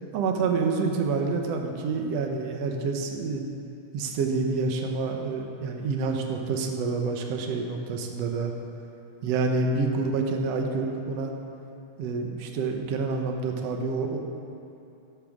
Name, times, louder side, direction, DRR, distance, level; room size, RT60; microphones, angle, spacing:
voice 1, 0.1-3.4 3.9-8.5 9.2-11.3 12.0-14.2, right 4 dB, 65° right, 3 dB, 1.9 m, -28 dB
13.5 x 11.5 x 3.7 m, 2.8 s
omnidirectional pair, 3.5 m